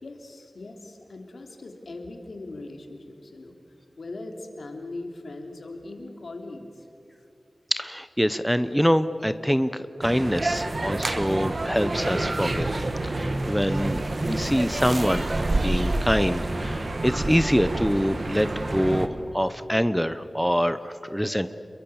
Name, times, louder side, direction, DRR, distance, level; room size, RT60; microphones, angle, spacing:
voice 1, 0.0-3.6 4.0-6.8, left 2 dB, 75° left, 3 dB, 3.2 m, -40 dB
voice 2, 7.7-12.8 13.0-21.6, equal, ahead, 12 dB, 0.8 m, -25 dB
sound 1, 10.0-19.1, right 2 dB, 50° right, 1.8 m, -28 dB
28.5 x 22.5 x 7.1 m, 2.7 s
wide cardioid pair, 90°, 0 cm